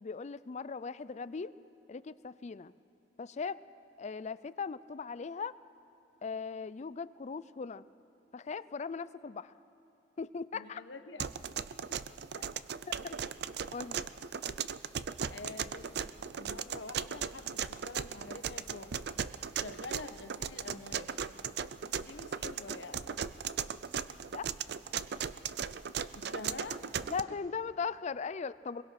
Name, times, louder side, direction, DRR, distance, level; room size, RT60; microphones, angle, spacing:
voice 1, 0.0-1.5 1.9-2.7 3.2-3.6 4.0-5.5 6.2-7.9 8.3-9.5 10.2-10.8 12.3-12.4 13.0-13.1 13.7-14.0 24.3-24.5 27.1-28.8, left 5 dB, 40° left, 17 dB, 0.4 m, -39 dB
voice 2, 10.5-11.3 11.8-12.2 13.0-13.2 15.3-19.1 19.5-21.1 21.9-23.2 26.1-26.8 27.3-27.4, left 3 dB, 75° left, 7 dB, 1.3 m, -47 dB
sound 1, 11.2-27.2, right 7 dB, 65° right, 0.5 m, -37 dB
23.0 x 22.0 x 5.9 m, 3.0 s
head